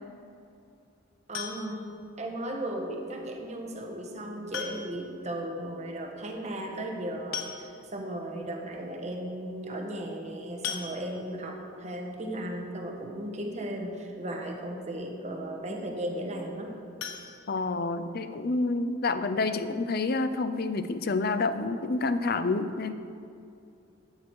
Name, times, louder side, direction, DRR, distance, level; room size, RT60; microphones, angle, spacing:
sound 1, 1.3-2.0 3.5-3.6 4.5-5.1 5.4-5.5 5.8-5.9 6.9-7.0 7.3-8.0 8.6-8.7 9.0-9.2 10.6-11.5 17.0-18.2 18.5-18.6 19.1-19.2 19.5-19.6, left 7 dB, 80° left, 1.0 m, -39 dB
voice 1, 1.3-1.8 2.2-16.8, right 1 dB, 35° right, 1 dB, 1.3 m, -36 dB
voice 2, 17.5-22.9, left 3 dB, 50° left, 11 dB, 0.5 m, -28 dB
13.0 x 8.5 x 4.7 m, 2.6 s
head